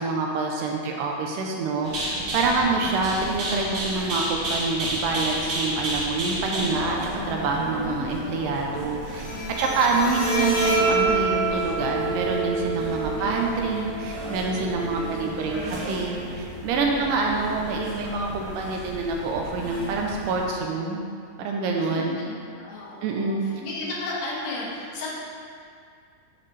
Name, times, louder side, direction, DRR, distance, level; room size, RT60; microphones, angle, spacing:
voice 1, 0.0-9.3 9.6-21.0 21.4-22.2 23.0-23.4, right 3 dB, 80° right, 0 dB, 2.1 m, -26 dB
voice 2, 0.7-1.1 2.6-2.9 7.8-9.0 9.3-9.5 10.0-10.1 12.9-13.4 14.8-16.0 16.9-17.4 21.8-25.2, left 2 dB, 85° left, -4 dB, 2.8 m, -37 dB
sound 1, 1.8-20.4, right 1 dB, 65° right, 1.3 m, -33 dB
Bowed string instrument, 9.0-16.0, right 3 dB, 55° left, 1.9 m, -28 dB
9.0 x 4.1 x 3.2 m, 2.2 s
omnidirectional pair, 4.0 m